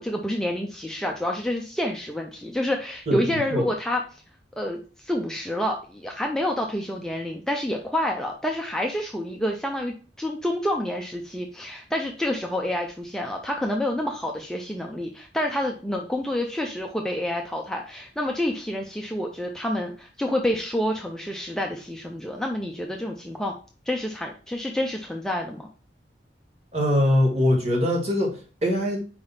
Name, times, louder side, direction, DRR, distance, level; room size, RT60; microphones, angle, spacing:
voice 1, 0.0-4.2 4.6-23.5 23.9-25.7, left 1 dB, 5° left, 1 dB, 0.5 m, -28 dB
voice 2, 26.7-29.0, left 1 dB, 40° right, 0 dB, 1.8 m, -22 dB
4.8 x 3.5 x 5.5 m, 0.37 s
head